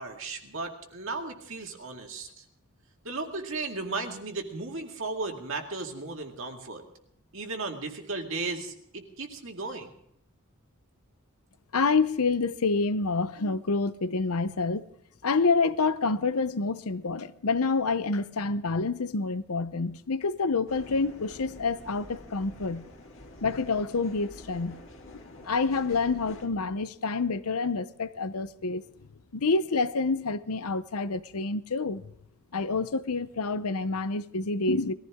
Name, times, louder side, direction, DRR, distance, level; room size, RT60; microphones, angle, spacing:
voice 1, 0.0-2.4 3.0-6.8 7.3-9.9, right 3 dB, 60° right, 2.1 m, -35 dB
voice 2, 11.7-14.9 15.2-22.9 23.4-24.8 25.1-28.8 29.3-32.0 32.5-34.9, left 4 dB, 80° left, 0.7 m, -28 dB
sound 1, 20.7-26.5, left 1 dB, 60° left, 2.1 m, -47 dB
20.0 x 15.0 x 3.6 m
head